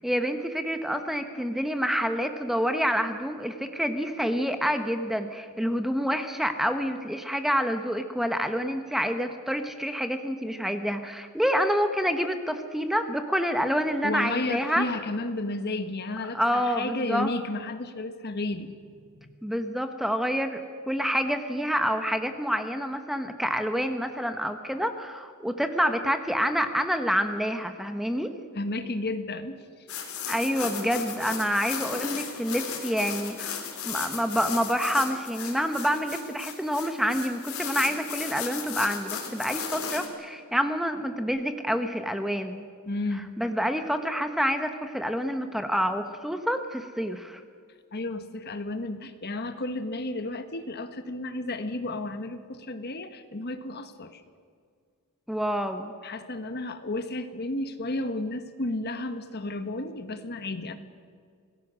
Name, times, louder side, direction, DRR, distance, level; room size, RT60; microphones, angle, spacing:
voice 1, 0.0-14.9 16.3-17.3 19.4-20.6 20.9-28.3 30.3-42.7 43.4-47.4 55.3-55.9, equal, ahead, 7 dB, 1.0 m, -27 dB
voice 2, 14.0-19.3 28.5-29.6 30.8-31.0 42.9-43.4 47.9-54.2 56.0-60.8, left 2 dB, 45° left, 9 dB, 1.3 m, -32 dB
sound 1, 29.9-40.1, left 7 dB, 75° left, 3.6 m, -35 dB
26.5 x 18.5 x 6.3 m, 2.1 s
head